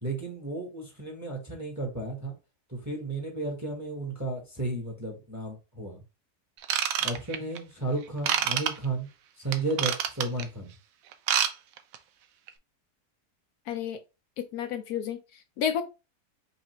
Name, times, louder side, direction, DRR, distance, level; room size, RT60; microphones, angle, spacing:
voice 1, 0.0-2.3 2.7-6.0 7.0-9.1 9.4-10.7, right 2 dB, 10° right, 1.0 m, -33 dB
Ratchet pawl / Tools, 6.6-7.6 8.2-8.7 9.5-10.4 11.1-11.5 11.8-12.0 12.5-12.6, right 9 dB, 70° right, 0.9 m, -26 dB
voice 2, 13.7-14.0 14.4-15.8, left 8 dB, 75° left, 1.1 m, -31 dB
5.6 x 2.7 x 3.0 m
omnidirectional pair, 1.7 m